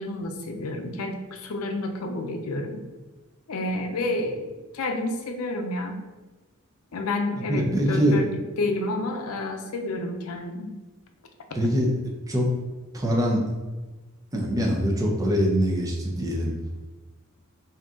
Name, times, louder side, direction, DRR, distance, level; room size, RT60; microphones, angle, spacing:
voice 1, 0.0-2.8 3.5-6.0 6.9-8.3 8.6-10.7, left 2 dB, 85° left, 5 dB, 0.5 m, -30 dB
voice 2, 7.5-8.2 11.5-11.9 12.3-12.5 12.9-13.4 14.3-16.5, equal, 15° right, -1 dB, 0.6 m, -23 dB
3.7 x 2.8 x 3.6 m, 1.2 s
head